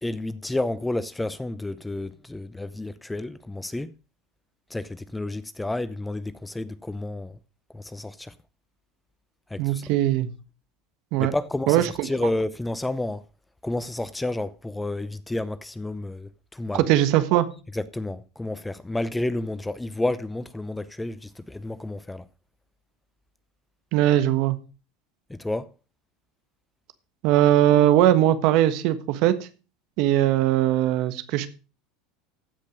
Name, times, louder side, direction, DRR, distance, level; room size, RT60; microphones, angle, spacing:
voice 1, 0.0-3.9 4.7-7.4 7.7-8.3 9.5-9.8 11.2-13.2 13.6-16.9 17.7-22.2 25.3-25.7, left 2 dB, 10° left, 0.7 m, -30 dB
voice 2, 9.6-10.3 11.1-11.3 11.7-12.1 16.7-17.5 23.9-24.6 27.2-29.4 30.0-31.5, right 13 dB, 60° right, 1.3 m, -20 dB
15.0 x 5.3 x 5.1 m
hypercardioid pair, 95°, 0 cm